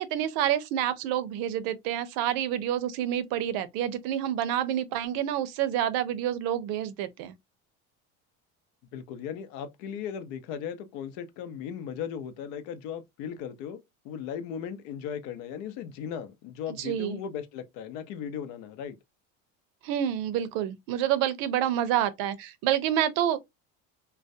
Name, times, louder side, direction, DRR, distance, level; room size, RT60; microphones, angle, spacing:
voice 1, 0.0-7.3 16.8-17.2 19.8-23.4, right 11 dB, 70° right, 0.6 m, -28 dB
voice 2, 8.9-13.8 14.0-19.0, left 8 dB, 80° left, 0.7 m, -37 dB
2.3 x 2.1 x 2.5 m
cardioid pair, 135°, 37 cm